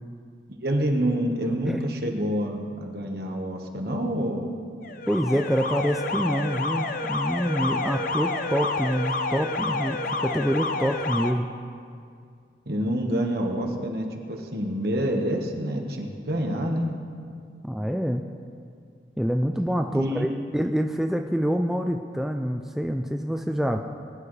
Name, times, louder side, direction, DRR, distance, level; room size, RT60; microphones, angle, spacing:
voice 1, 0.6-4.5 12.7-16.9 19.9-20.3, equal, 60° right, 2 dB, 1.4 m, -27 dB
Alarm, 4.8-11.3, left 3 dB, 50° left, 0.6 m, -29 dB
voice 2, 5.1-11.5 17.7-18.2 19.2-23.8, equal, ahead, 4 dB, 0.3 m, -26 dB
20.0 x 11.0 x 3.3 m, 2.2 s
head